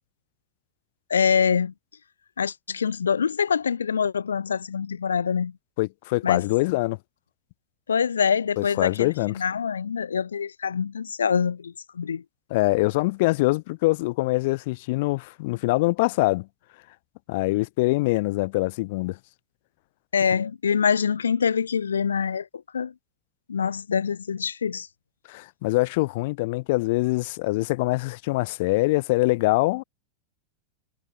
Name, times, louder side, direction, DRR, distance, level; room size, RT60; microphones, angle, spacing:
voice 1, 1.1-1.7 2.4-5.5 6.2-6.4 7.9-12.2 20.1-22.5 22.7-22.9 23.5-24.9, left 6 dB, 70° left, 1.8 m, -25 dB
voice 2, 5.8-7.0 8.6-9.3 12.5-16.5 17.3-19.2 25.3-29.8, left 22 dB, 50° left, 3.0 m, -24 dB
figure-of-eight pair, 90°, 0 cm